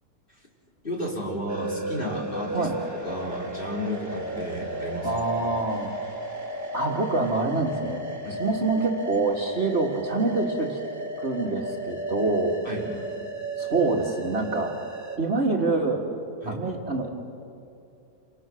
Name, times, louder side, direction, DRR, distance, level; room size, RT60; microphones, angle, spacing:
voice 1, 0.8-5.1 8.2-8.4 12.6-12.9 16.4-16.6, left 1 dB, 30° left, -3 dB, 4.5 m, -33 dB
sound 1, 1.5-15.2, right 1 dB, 10° right, 2.4 m, -34 dB
voice 2, 5.0-5.9 6.7-8.1 8.4-10.8 11.2-12.6 13.6-14.7 15.2-16.0 16.5-17.1, right 3 dB, 40° right, 0 dB, 2.0 m, -26 dB
29.5 x 26.0 x 6.3 m, 2.6 s
omnidirectional pair, 1.8 m